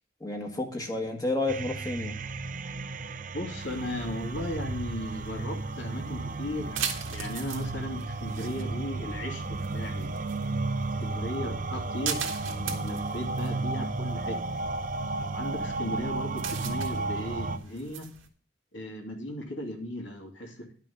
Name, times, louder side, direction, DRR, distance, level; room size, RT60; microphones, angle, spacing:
voice 1, 0.2-2.2, left 2 dB, 20° left, 1.6 m, -31 dB
sound 1, 1.5-17.6, right 3 dB, 40° right, 0.6 m, -33 dB
voice 2, 3.3-10.1 11.0-14.4 15.2-18.1 18.7-20.7, left 1 dB, 70° left, 2.6 m, -36 dB
sound 2, 3.6-18.3, right 7 dB, 90° right, 2.0 m, -41 dB
11.5 x 5.9 x 7.1 m
head